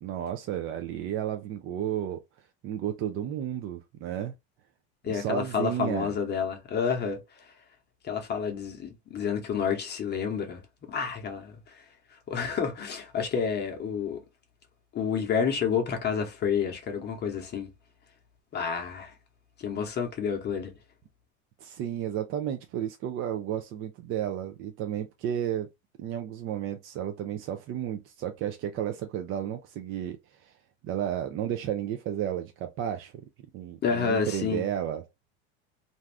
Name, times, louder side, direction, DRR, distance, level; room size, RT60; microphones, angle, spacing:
voice 1, 0.0-2.2 2.6-4.3 5.1-6.1 21.6-25.7 26.0-30.5 30.8-33.1 33.5-35.0, right 10 dB, 40° right, 0.5 m, -32 dB
voice 2, 5.0-7.5 8.0-10.6 10.9-11.9 12.3-14.2 14.9-17.7 18.5-19.1 19.6-20.7 33.8-34.6, left 6 dB, 35° left, 0.8 m, -29 dB
2.6 x 2.3 x 3.3 m
supercardioid pair, 110°, 32 cm